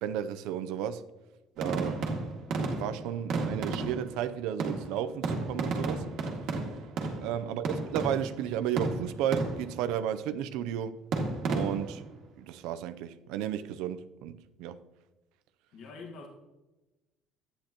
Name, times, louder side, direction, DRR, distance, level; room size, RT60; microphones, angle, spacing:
voice 1, 0.0-1.0 1.6-2.0 2.7-6.1 7.2-11.0 11.5-12.0 12.4-14.8, right 10 dB, 90° right, 0.5 m, -33 dB
sound 1, 1.6-4.3 4.6-8.5 8.8-9.8 11.1-12.1, right 3 dB, 55° right, 1.9 m, -33 dB
voice 2, 1.8-2.2 7.4-7.6 15.7-16.3, left 3 dB, 55° left, 1.5 m, -46 dB
11.5 x 10.0 x 2.9 m
cardioid pair, 165°, 0 cm